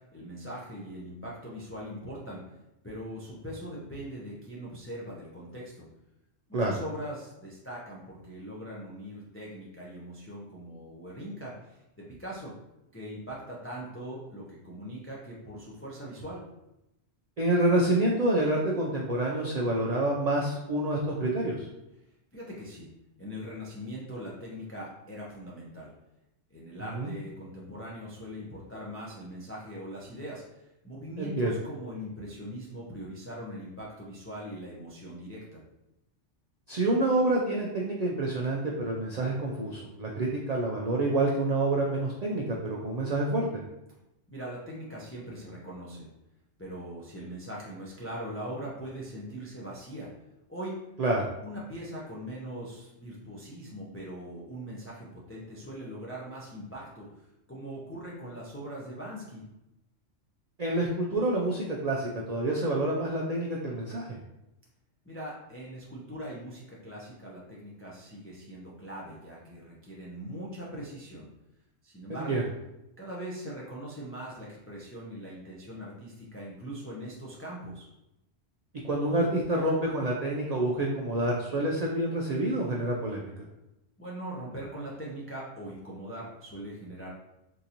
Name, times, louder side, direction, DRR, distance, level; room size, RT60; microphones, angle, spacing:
voice 1, 0.1-2.5 2.8-5.9 6.5-12.5 12.9-16.4 22.3-22.9 23.2-25.9 26.5-35.6 44.3-46.1 46.6-50.1 50.5-50.8 51.4-57.1 57.5-59.4 65.1-71.3 71.8-72.5 73.0-77.9 84.0-87.1, equal, 20° left, -6 dB, 0.3 m, -41 dB
voice 2, 17.4-21.7 26.9-27.1 31.2-31.5 36.7-43.6 51.0-51.3 60.6-64.2 72.1-72.4 78.8-83.3, right 2 dB, 80° right, -2 dB, 0.3 m, -28 dB
3.7 x 2.5 x 2.8 m, 0.91 s
omnidirectional pair, 1.3 m